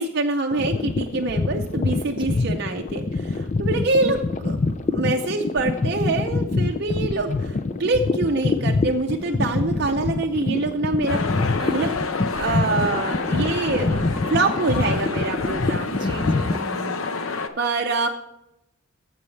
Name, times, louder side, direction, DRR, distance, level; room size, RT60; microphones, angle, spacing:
voice 1, 0.0-4.6 4.9-11.2 11.7-12.0 12.4-15.9 17.6-18.1, right 3 dB, 50° right, 4 dB, 0.6 m, -25 dB
sound 1, 0.5-16.6, left 3 dB, 35° left, 0.5 m, -25 dB
voice 2, 2.1-2.8 11.6-12.0 15.9-17.0, right 1 dB, 25° right, 6 dB, 1.1 m, -36 dB
sound 2, 11.1-17.5, left 4 dB, 85° left, 0.9 m, -29 dB
12.5 x 7.7 x 3.3 m, 0.86 s
head